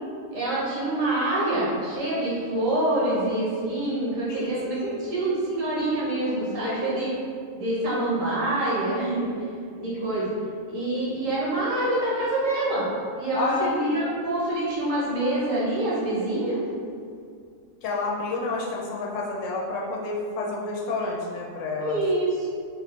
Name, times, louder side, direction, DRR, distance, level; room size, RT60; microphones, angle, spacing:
voice 1, 0.3-7.1 7.6-9.3 9.8-10.3 10.7-12.9 13.2-16.6 21.8-22.5, right 1 dB, 70° right, -7 dB, 1.4 m, -26 dB
voice 2, 4.3-5.0 6.6-7.0 13.3-14.0 17.8-22.0, left 3 dB, 70° left, -2 dB, 0.9 m, -30 dB
3.4 x 2.3 x 3.6 m, 2.3 s
omnidirectional pair, 1.4 m